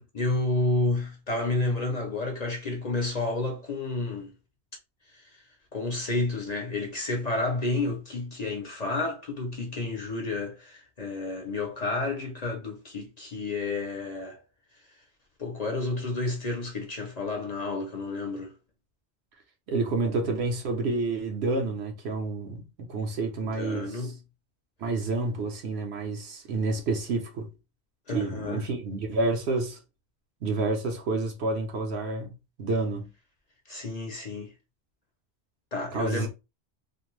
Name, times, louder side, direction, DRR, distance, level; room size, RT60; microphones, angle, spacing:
voice 1, 0.0-4.3 5.1-5.2 5.7-14.4 15.4-18.5 23.4-24.2 28.1-28.6 33.7-34.5 35.7-36.3, left 2 dB, 45° left, 0.7 m, -30 dB
voice 2, 19.7-24.1 24.8-27.5 28.1-29.8 30.4-32.3 32.6-33.1 35.9-36.3, right 3 dB, 70° right, 1.0 m, -29 dB
2.5 x 2.2 x 3.0 m
omnidirectional pair, 1.1 m